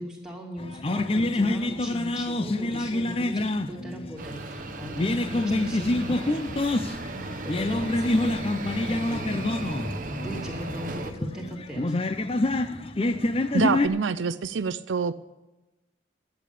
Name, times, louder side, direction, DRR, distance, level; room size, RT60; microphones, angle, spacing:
voice 1, 0.0-9.4 10.0-11.8, equal, 5° right, -3 dB, 2.6 m, -39 dB
sound 1, 0.6-13.9, left 2 dB, 30° left, 0.6 m, -27 dB
sound 2, 4.2-11.1, right 2 dB, 45° right, 0.9 m, -36 dB
voice 2, 13.5-15.1, right 5 dB, 80° right, 12 dB, 0.5 m, -26 dB
11.0 x 8.5 x 8.4 m, 1.1 s
head